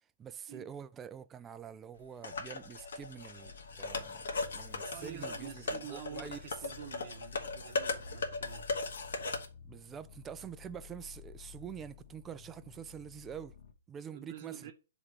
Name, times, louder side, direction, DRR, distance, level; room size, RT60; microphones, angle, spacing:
voice 1, 0.2-4.3 4.5-6.4 9.6-13.5 13.9-14.7, right 8 dB, 15° right, 0.3 m, -46 dB
sound 1, 2.2-9.4, left 3 dB, 80° left, 1.2 m, -38 dB
sound 2, 3.4-13.7, left 9 dB, 55° left, 1.2 m, -53 dB
voice 2, 4.9-8.8 14.1-14.7, right 9 dB, 50° right, 0.8 m, -47 dB
7.2 x 3.0 x 4.8 m
hypercardioid pair, 145°, 0 cm